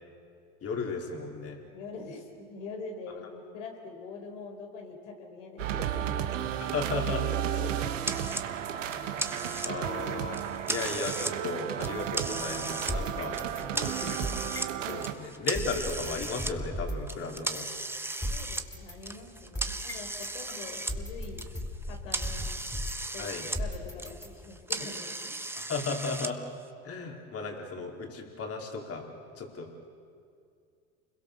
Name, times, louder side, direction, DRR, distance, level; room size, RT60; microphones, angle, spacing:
voice 1, 0.6-1.6 6.6-7.2 7.6-7.9 8.8-14.2 14.8-17.7 23.2-23.5 25.6-26.4 26.8-29.1 29.4-29.7, left 4 dB, 40° left, 2 dB, 4.5 m, -35 dB
voice 2, 1.7-6.4 18.3-21.4 21.9-22.5 23.1-25.4, left 4 dB, 75° left, 3 dB, 4.5 m, -44 dB
sound 1, 5.6-15.1, right 10 dB, 85° right, 1.6 m, -33 dB
sound 2, 8.0-8.5 8.9-9.9 10.3-11.3 11.7-12.9 13.3-14.7 15.0-16.5 17.1-21.0 21.2-23.6 23.9-26.3, right 2 dB, 5° right, 1.2 m, -36 dB
sound 3, 12.9-15.0 15.5-17.2 17.5-17.6 18.2-20.3 20.9-23.2 23.5-24.6, equal, 10° left, 4.1 m, -37 dB
29.0 x 22.0 x 6.8 m, 2.3 s
hypercardioid pair, 85°, 36 cm